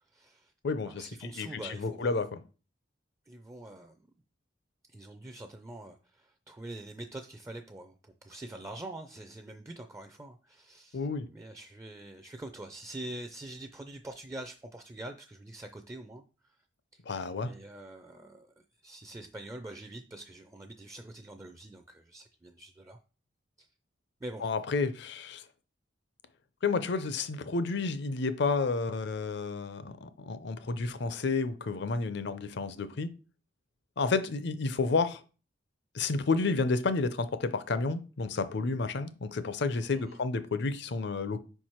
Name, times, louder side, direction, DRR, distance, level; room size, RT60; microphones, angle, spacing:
voice 1, 0.1-0.5 0.9-2.2 3.3-4.0 4.9-16.2 16.9-17.0 17.4-18.5 18.8-23.0 23.6-23.7 24.2-24.5 39.9-40.2, right 1 dB, 15° right, 0.4 m, -45 dB
voice 2, 0.6-2.4 10.9-11.3 17.1-17.5 24.4-25.4 26.6-33.1 34.0-35.2 35.9-41.4, left 4 dB, 65° left, 0.6 m, -31 dB
5.0 x 4.6 x 4.4 m
head